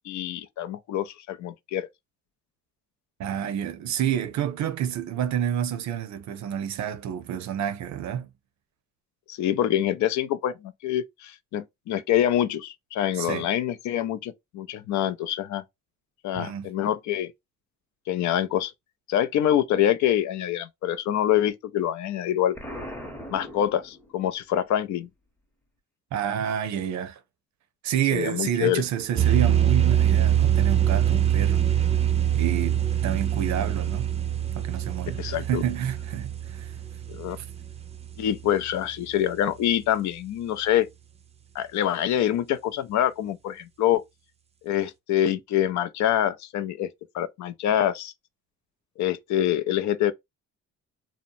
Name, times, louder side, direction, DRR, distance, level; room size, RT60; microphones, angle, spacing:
voice 1, 0.0-1.9 9.3-15.6 16.2-17.3 18.1-18.7 19.1-22.6 23.3-25.1 28.1-28.8 35.2-35.6 37.2-37.4 38.2-40.9 41.5-44.0 44.6-46.9 47.1-48.1 49.0-50.1, left 11 dB, 70° left, 0.5 m, -25 dB
voice 2, 3.2-8.3 13.1-13.5 16.3-16.7 26.1-27.2 27.8-31.7 32.3-34.1 34.6-36.8 37.4-37.5, right 9 dB, 65° right, 0.6 m, -29 dB
Explosion, 22.6-24.4, equal, 5° left, 0.7 m, -39 dB
sound 1, 29.1-38.6, right 10 dB, 20° right, 0.4 m, -24 dB
2.8 x 2.0 x 2.6 m
cardioid pair, 90°, 30 cm